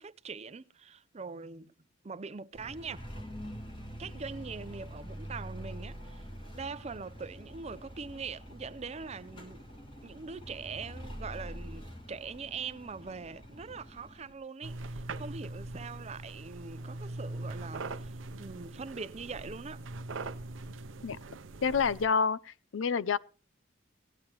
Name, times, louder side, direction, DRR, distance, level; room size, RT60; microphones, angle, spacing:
voice 1, 0.0-1.7 2.0-3.0 4.0-6.3 6.5-9.6 10.0-19.8, right 5 dB, 35° right, 0.5 m, -42 dB
sound 1, 2.5-14.3, equal, 25° left, 2.7 m, -45 dB
sound 2, 14.6-22.1, right 2 dB, 90° right, 0.7 m, -41 dB
voice 2, 21.6-23.2, left 5 dB, 85° left, 0.6 m, -28 dB
18.0 x 10.5 x 3.0 m
head